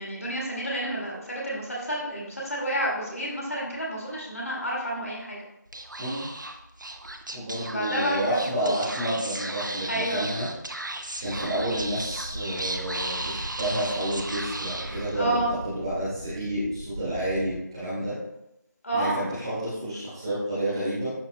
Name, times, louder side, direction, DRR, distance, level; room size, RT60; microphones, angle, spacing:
voice 1, 0.0-5.4 7.6-8.9 9.9-10.2 15.1-15.5 18.8-19.2, right 1 dB, 50° left, -4 dB, 2.0 m, -30 dB
Speech / Whispering, 5.7-15.5, right 1 dB, 75° right, 0.8 m, -35 dB
voice 2, 7.3-10.5 11.2-18.1 18.9-21.1, right 1 dB, 15° right, -10 dB, 1.5 m, -30 dB
sound 1, 11.2-17.6, right 1 dB, 30° right, 0.5 m, -40 dB
11.0 x 4.0 x 2.3 m, 0.88 s
figure-of-eight pair, 170°, 10 cm